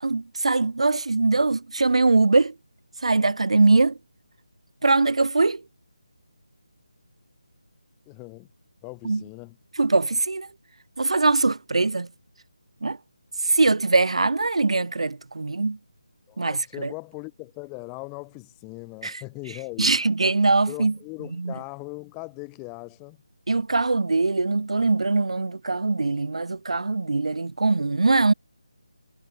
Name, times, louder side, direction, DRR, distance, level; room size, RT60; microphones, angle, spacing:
voice 1, 0.0-2.5 3.0-4.0 4.8-5.6 9.0-9.2 9.8-10.5 11.0-12.1 12.8-13.0 13.4-15.8 16.4-16.9 19.0-19.2 19.8-20.9 21.4-21.5 23.5-28.3, right 3 dB, 70° right, 0.4 m, -22 dB
voice 2, 8.1-8.5 8.8-9.6 16.3-20.0 20.7-23.2, left 33 dB, 15° left, 1.6 m, -39 dB
figure-of-eight pair, 160°, 3 cm